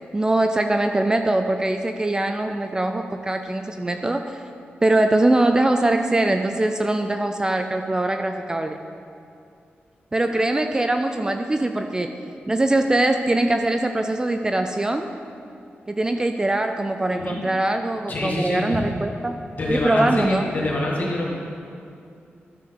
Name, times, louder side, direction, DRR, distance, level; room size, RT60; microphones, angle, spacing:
voice 1, 0.1-4.4 4.8-8.8 10.1-12.1 12.5-15.1 15.9-19.3 19.7-20.4, right 2 dB, 20° right, 6 dB, 0.3 m, -22 dB
voice 2, 18.1-18.8 19.5-21.3, left 1 dB, 45° left, -4 dB, 2.0 m, -25 dB
12.0 x 6.7 x 4.0 m, 2.5 s
wide cardioid pair, 140°, 4 cm